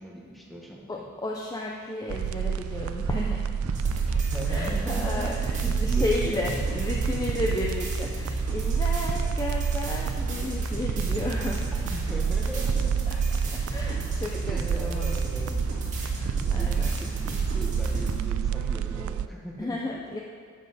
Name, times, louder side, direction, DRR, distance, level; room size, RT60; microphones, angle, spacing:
voice 1, 0.0-1.1 4.3-7.1 11.7-13.1 14.3-15.7 16.2-19.9, right 1 dB, ahead, -2 dB, 1.2 m, -38 dB
voice 2, 0.9-12.0 13.5-15.2 16.2-16.9 19.6-20.2, left 2 dB, 15° left, -1 dB, 0.5 m, -33 dB
sound 1, 2.1-19.3, right 7 dB, 70° right, 0.3 m, -29 dB
sound 2, 3.7-18.2, right 1 dB, 35° right, 1.9 m, -33 dB
10.0 x 7.6 x 4.1 m, 2.1 s
head